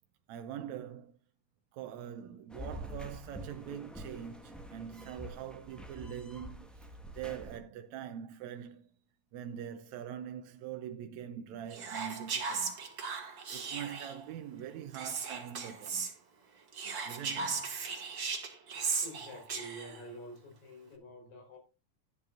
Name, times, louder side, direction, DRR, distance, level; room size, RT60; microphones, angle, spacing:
voice 1, 0.3-1.2 1.7-6.9 7.1-8.9 9.3-12.8 13.5-16.1 17.1-17.7, right 9 dB, 75° right, 2.0 m, -43 dB
sound 1, 2.5-7.6, equal, ahead, 0.7 m, -46 dB
Whispering, 11.7-14.2 14.9-16.1 16.7-20.0, right 5 dB, 45° right, 2.2 m, -37 dB
voice 2, 19.0-21.6, right 1 dB, 75° left, 5.6 m, -48 dB
12.0 x 11.0 x 2.5 m
omnidirectional pair, 3.3 m